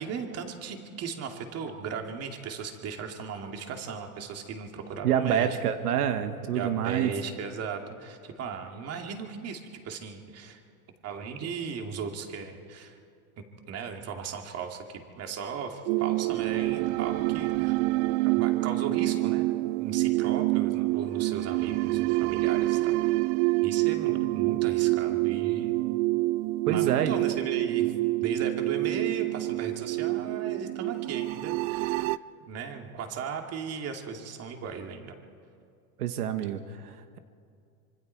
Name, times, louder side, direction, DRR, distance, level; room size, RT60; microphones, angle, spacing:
voice 1, 0.0-5.6 6.5-10.6 11.0-13.0 13.7-17.7 18.3-19.5 19.8-23.0 23.6-25.8 26.7-27.9 28.2-32.1 32.4-35.2, right 6 dB, 35° right, 4 dB, 2.5 m, -37 dB
voice 2, 5.0-7.1 26.7-27.2 36.0-37.2, right 9 dB, 85° right, 9 dB, 1.4 m, -27 dB
sound 1, 15.9-32.2, right 21 dB, 50° right, 0.5 m, -27 dB
26.0 x 24.5 x 4.6 m, 2.3 s
supercardioid pair, 130°, 44 cm